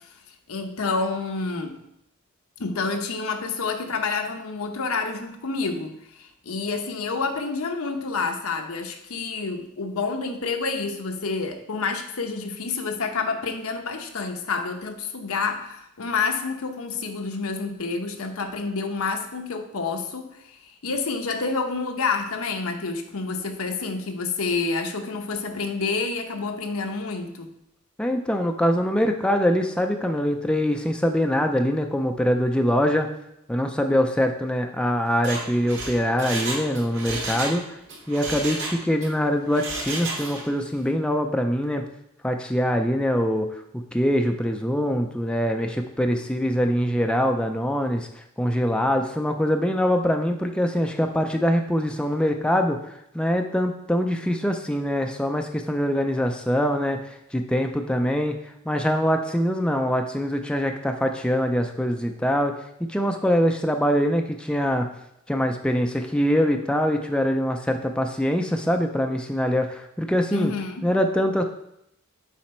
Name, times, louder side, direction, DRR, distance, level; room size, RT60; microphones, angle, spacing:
voice 1, 0.5-1.8 2.6-27.5 70.3-70.9, left 4 dB, 80° left, 5 dB, 0.9 m, -28 dB
voice 2, 28.0-33.1 33.5-37.8 38.1-41.8 42.2-62.5 62.9-64.9 65.3-70.5 70.8-71.4, equal, 5° left, 4 dB, 0.4 m, -23 dB
Mechanisms, 35.1-37.6 37.9-39.1 39.5-40.5 40.8-40.9, right 2 dB, 55° right, 1.9 m, -32 dB
7.3 x 5.0 x 4.4 m, 0.77 s
head